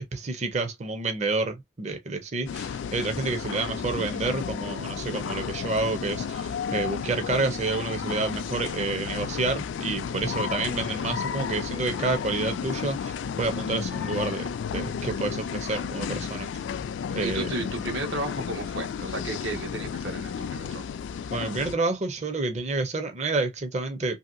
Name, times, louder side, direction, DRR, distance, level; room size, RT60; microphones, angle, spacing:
voice 1, 0.1-16.7 17.1-17.5 21.3-24.2, right 3 dB, 35° right, 0.5 m, -29 dB
sound 1, 2.5-21.8, left 7 dB, 80° left, 0.3 m, -32 dB
voice 2, 17.2-20.9, right 2 dB, 80° right, 1.2 m, -33 dB
2.9 x 2.7 x 2.5 m
head